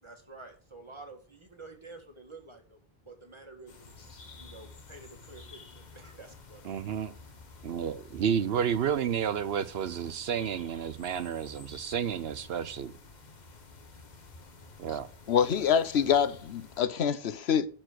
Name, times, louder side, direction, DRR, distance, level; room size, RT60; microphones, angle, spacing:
voice 1, 0.0-2.8 3.1-3.9 4.4-6.9, right 3 dB, 25° right, 2.1 m, -49 dB
sound 1, 3.7-16.8, left 3 dB, 45° left, 1.3 m, -51 dB
voice 2, 6.6-7.1 7.6-12.9 14.8-15.1, right 8 dB, 75° right, 0.9 m, -31 dB
voice 3, 15.3-17.7, left 8 dB, 80° left, 1.0 m, -26 dB
12.0 x 4.6 x 6.3 m
omnidirectional pair, 1.0 m